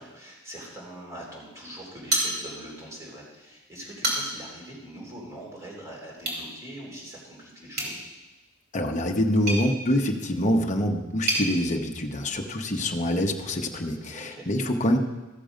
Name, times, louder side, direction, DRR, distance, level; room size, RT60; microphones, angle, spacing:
voice 1, 0.0-8.0 14.1-14.5, right 1 dB, 15° right, -5 dB, 3.6 m, -42 dB
sound 1, 2.1-2.9 3.2-3.3 3.8-4.5 6.2-6.5 7.7-11.5, right 1 dB, 50° right, 3.0 m, -31 dB
voice 2, 8.7-15.0, left 1 dB, 35° left, 1 dB, 1.0 m, -25 dB
14.5 x 6.8 x 5.1 m, 1.1 s
head